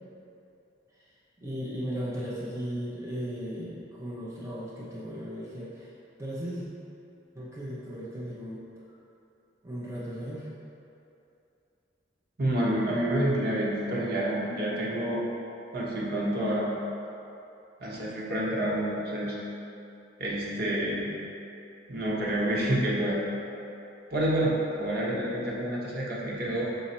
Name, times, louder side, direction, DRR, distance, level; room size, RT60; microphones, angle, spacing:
voice 1, 1.4-5.9 6.2-6.6 7.3-8.6 9.6-10.5, equal, 15° right, -8 dB, 0.7 m, -36 dB
voice 2, 12.4-15.2 15.7-16.7 17.8-19.4 20.2-21.1 21.9-23.2 24.1-26.7, right 1 dB, 55° right, -5 dB, 1.2 m, -28 dB
6.3 x 4.0 x 4.3 m, 2.8 s
head